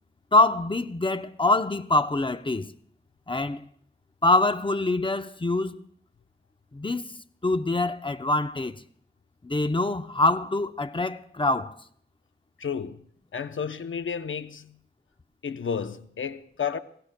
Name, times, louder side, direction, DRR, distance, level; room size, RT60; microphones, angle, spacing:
voice 1, 0.3-2.7 3.3-3.6 4.2-5.8 6.7-7.0 7.4-8.8 9.4-11.8, left 2 dB, 25° left, 0.7 m, -24 dB
voice 2, 12.6-13.1 13.3-14.8 15.4-16.8, left 7 dB, 70° left, 0.7 m, -32 dB
27.0 x 16.0 x 2.2 m
cardioid pair, 50°, 21 cm